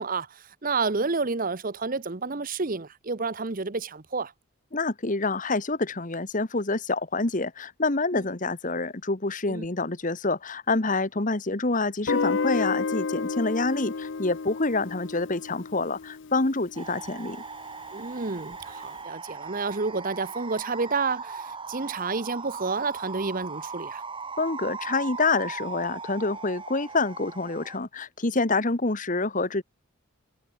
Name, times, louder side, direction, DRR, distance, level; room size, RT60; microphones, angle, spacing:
voice 1, 0.0-4.3 8.1-8.3 9.5-9.7 17.9-24.0, right 4 dB, 40° right, 0.8 m, -30 dB
voice 2, 4.7-17.4 24.4-29.6, left 3 dB, 35° left, 1.3 m, -27 dB
Guitar, 12.1-16.9, left 4 dB, 55° left, 0.6 m, -31 dB
sound 1, 16.7-27.8, right 4 dB, 25° right, 2.8 m, -39 dB
head